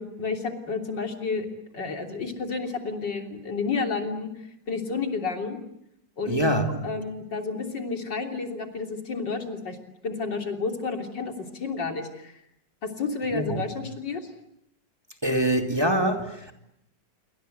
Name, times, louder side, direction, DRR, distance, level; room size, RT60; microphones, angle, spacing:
voice 1, 0.0-1.5 1.7-4.3 4.7-5.6 6.2-6.6 6.8-9.8 10.0-12.4 12.8-14.3, left 4 dB, 75° left, 4 dB, 3.9 m, -31 dB
voice 2, 6.3-6.8 13.3-13.6 15.2-16.5, right 1 dB, 15° right, 4 dB, 2.6 m, -24 dB
27.5 x 24.5 x 8.0 m, 0.77 s
omnidirectional pair, 1.9 m